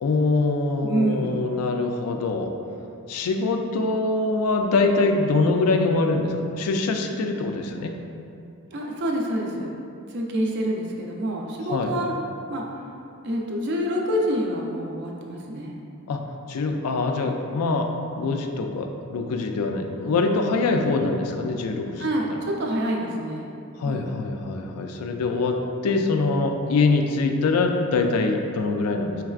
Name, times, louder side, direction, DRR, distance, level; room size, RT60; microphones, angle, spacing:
voice 1, 0.0-2.5 3.1-7.9 11.7-11.9 16.1-16.2 16.5-17.9 18.2-22.1 23.8-25.6 25.8-29.2, left 3 dB, 90° left, 4 dB, 0.4 m, -24 dB
voice 2, 0.8-1.4 8.7-9.7 10.1-12.2 12.5-12.6 13.2-15.8 22.0-23.5 23.8-24.1, equal, 50° right, -1 dB, 0.5 m, -27 dB
4.6 x 3.2 x 2.4 m, 2.6 s
head